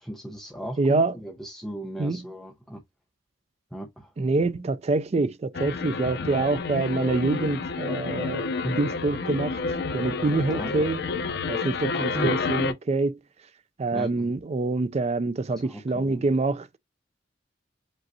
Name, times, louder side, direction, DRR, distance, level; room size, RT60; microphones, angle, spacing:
voice 1, 0.0-2.8 3.7-4.1 6.2-6.3 8.6-8.8 10.5-10.7 11.9-12.5 13.9-14.3 15.5-16.2, right 1 dB, ahead, 0.8 m, -36 dB
voice 2, 0.8-1.1 2.0-2.2 4.2-8.5 8.8-9.6 9.9-11.0 11.5-13.2 13.8-16.7, right 3 dB, 35° right, 0.4 m, -26 dB
sound 1, 5.5-12.7, left 4 dB, 60° left, 0.7 m, -29 dB
5.2 x 3.0 x 2.7 m
head